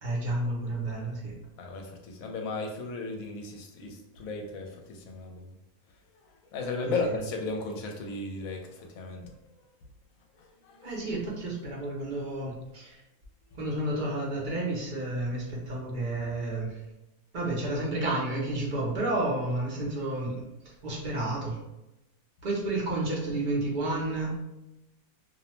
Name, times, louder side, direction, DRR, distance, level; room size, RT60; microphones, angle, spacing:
voice 1, 0.0-1.4 7.0-7.2 10.8-13.0 13.5-16.8 17.3-21.6 22.4-24.4, right 2 dB, 50° right, -4 dB, 0.6 m, -31 dB
voice 2, 1.6-5.5 6.5-9.3 10.4-10.9, left 3 dB, 75° left, 3 dB, 1.0 m, -35 dB
2.6 x 2.0 x 2.9 m, 0.91 s
omnidirectional pair, 1.5 m